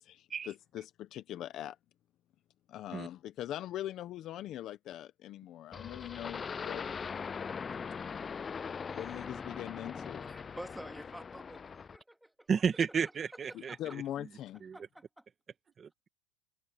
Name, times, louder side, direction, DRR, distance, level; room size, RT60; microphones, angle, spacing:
voice 1, 0.0-1.8 2.7-6.8 8.9-10.3 13.5-14.6, left 12 dB, 35° left, 1.0 m, -42 dB
sound 1, 5.7-12.0, left 6 dB, 20° left, 0.3 m, -41 dB
voice 2, 10.3-12.5 13.7-13.8 14.7-15.0, right 1 dB, ahead, 2.7 m, -48 dB
voice 3, 12.5-13.8 14.6-14.9 15.8-15.9, right 6 dB, 20° right, 2.0 m, -32 dB
supercardioid pair, 150°, 0 cm